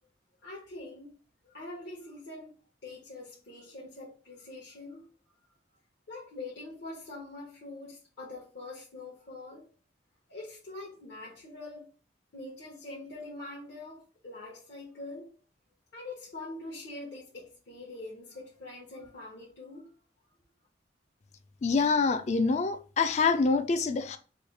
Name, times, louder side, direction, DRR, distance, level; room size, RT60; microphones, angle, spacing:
voice 1, 0.4-1.1 1.4-2.5 2.8-5.1 6.1-9.7 10.3-11.9 12.3-15.3 15.9-19.9, left 2 dB, 65° left, 0.9 m, -44 dB
voice 2, 21.6-24.2, left 4 dB, 35° left, 0.3 m, -26 dB
3.1 x 2.3 x 3.2 m
head